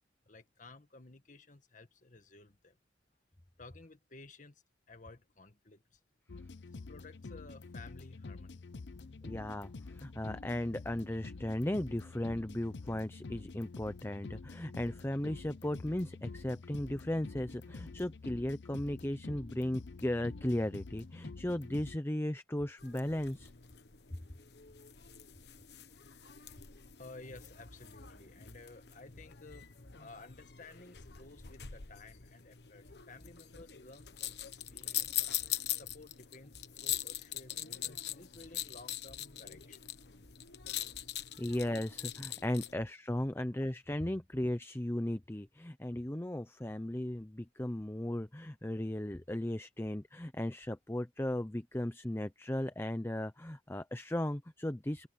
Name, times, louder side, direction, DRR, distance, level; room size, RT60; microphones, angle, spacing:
voice 1, 0.3-2.8 3.6-6.0 6.7-8.6 27.0-39.9 40.2-40.3 40.6-41.0, left 2 dB, 45° left, 1.8 m, -54 dB
sound 1, 6.3-22.0, left 3 dB, 85° left, 0.7 m, -48 dB
voice 2, 9.2-23.5 41.4-55.1, left 1 dB, 15° left, 0.7 m, -36 dB
sound 2, 22.8-42.7, left 12 dB, 65° left, 1.2 m, -42 dB
head